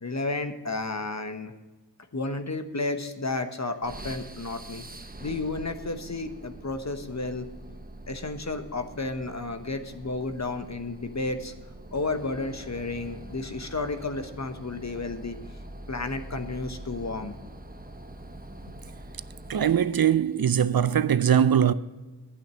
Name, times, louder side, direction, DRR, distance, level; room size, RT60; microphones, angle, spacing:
voice 1, 0.0-1.5 2.1-4.9 5.2-7.5 8.1-11.5 11.9-15.4 15.9-17.3, left 3 dB, 40° left, 1.1 m, -32 dB
sound 1, 3.8-20.0, right 1 dB, 20° right, 0.9 m, -44 dB
voice 2, 19.5-21.7, right 9 dB, 60° right, 0.5 m, -21 dB
10.5 x 8.7 x 6.3 m
wide cardioid pair, 45°, 41 cm